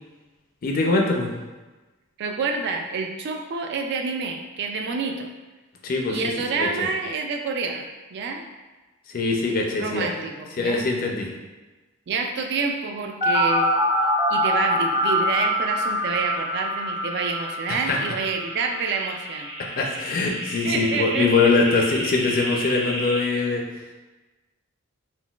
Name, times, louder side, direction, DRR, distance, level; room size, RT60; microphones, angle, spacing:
voice 1, 0.6-1.3 5.8-6.2 6.5-6.9 9.1-10.1 10.6-11.3 17.7-18.0 19.6-23.7, left 3 dB, 45° left, 1 dB, 0.4 m, -23 dB
voice 2, 2.2-5.3 6.1-8.4 9.7-10.9 12.1-13.8 14.3-19.5 20.7-21.5 23.3-23.4, right 4 dB, 55° right, 4 dB, 0.3 m, -28 dB
sound 1, 13.2-23.2, equal, 25° right, 0.7 m, -25 dB
3.8 x 2.2 x 2.3 m, 1.2 s
head